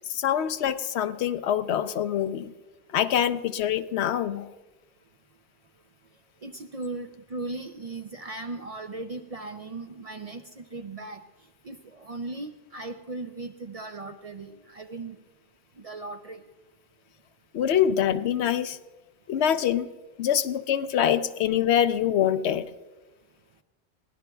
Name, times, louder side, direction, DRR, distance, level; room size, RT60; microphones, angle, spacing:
voice 1, 0.1-2.5 2.9-4.5 17.5-18.8 19.3-19.9 20.2-22.7, left 9 dB, 80° left, 12 dB, 0.9 m, -25 dB
voice 2, 6.4-11.2 11.6-15.2 15.8-16.4, right 2 dB, 50° right, 6 dB, 0.5 m, -38 dB
22.5 x 17.0 x 2.3 m, 1.2 s
omnidirectional pair, 1.1 m